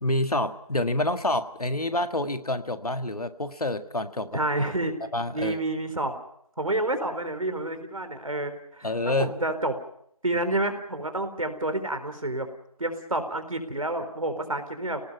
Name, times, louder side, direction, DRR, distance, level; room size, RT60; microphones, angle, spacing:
voice 1, 0.0-4.4 5.1-5.6 8.8-9.4, left 1 dB, 80° left, 9 dB, 1.8 m, -27 dB
voice 2, 4.3-5.0 5.3-6.1 6.6-9.7 10.2-12.5 12.8-15.0, right 2 dB, 65° right, 8 dB, 4.1 m, -29 dB
28.5 x 18.5 x 5.8 m, 0.69 s
figure-of-eight pair, 175°, 19 cm